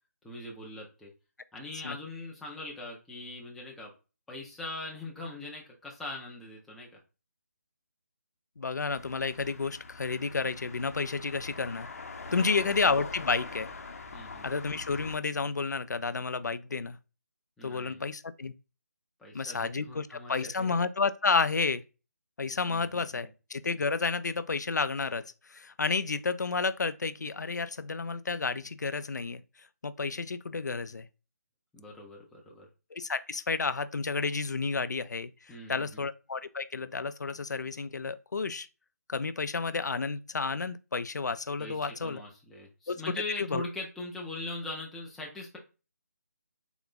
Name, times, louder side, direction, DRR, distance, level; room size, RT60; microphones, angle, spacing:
voice 1, 0.2-1.1 1.5-3.9 4.3-7.0 12.3-12.7 14.1-14.5 17.6-18.0 19.2-20.7 22.7-23.3 31.7-32.7 35.5-36.0 41.6-45.6, left 2 dB, ahead, 0.3 m, -41 dB
voice 2, 8.6-11.9 12.3-13.7 14.4-17.0 17.6-18.5 19.3-21.8 22.4-29.4 29.8-31.1 32.9-38.7 39.1-42.2 42.9-43.6, left 4 dB, 90° left, 0.4 m, -31 dB
sound 1, 8.9-15.2, left 4 dB, 55° left, 0.7 m, -43 dB
3.9 x 2.4 x 3.6 m
figure-of-eight pair, 160°, 9 cm